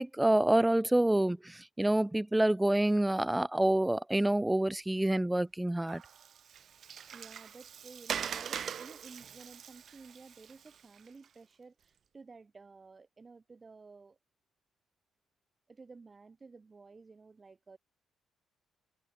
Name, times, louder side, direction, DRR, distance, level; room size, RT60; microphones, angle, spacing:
voice 1, 0.0-6.0, right 1 dB, 10° right, 0.6 m, -27 dB
Water, 5.9-11.3, right 8 dB, 60° right, 1.1 m, -42 dB
voice 2, 7.1-14.2 15.7-17.8, right 4 dB, 30° right, 1.9 m, -53 dB
cardioid pair, 90°, 0 cm